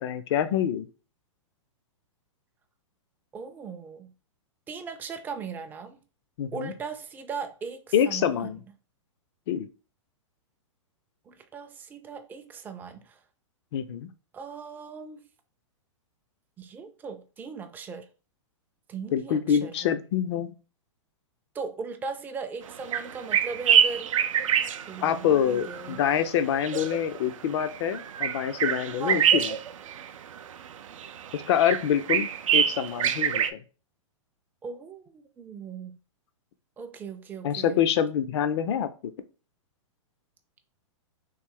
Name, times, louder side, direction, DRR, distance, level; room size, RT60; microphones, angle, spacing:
voice 1, 0.0-0.9 6.4-6.7 7.9-8.6 9.5-9.7 13.7-14.1 19.1-20.5 25.0-29.6 31.3-33.6 37.4-39.1, left 9 dB, 55° left, 0.4 m, -26 dB
voice 2, 3.3-4.1 4.7-6.0 6.5-8.5 11.3-13.2 14.3-15.2 16.6-18.1 18.9-19.9 21.5-24.1 24.9-26.0 29.0-29.3 34.6-36.0 36.8-37.8, right 5 dB, 10° right, 0.3 m, -38 dB
sound 1, 22.7-33.5, right 9 dB, 80° right, 0.4 m, -26 dB
3.2 x 2.5 x 3.6 m
hypercardioid pair, 120°, 17 cm